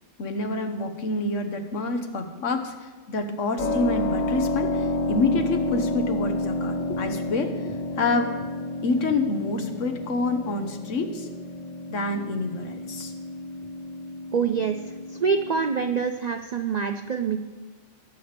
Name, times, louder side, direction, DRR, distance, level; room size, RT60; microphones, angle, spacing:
voice 1, 0.2-8.3 8.8-11.3 11.9-13.1, left 2 dB, 80° left, 6 dB, 1.4 m, -27 dB
Keyboard (musical), 3.6-16.1, left 1 dB, 40° left, 0.9 m, -30 dB
voice 2, 14.3-14.8 15.2-17.4, right 6 dB, 65° right, 7 dB, 0.4 m, -25 dB
17.5 x 8.0 x 3.4 m, 1.3 s
omnidirectional pair, 1.3 m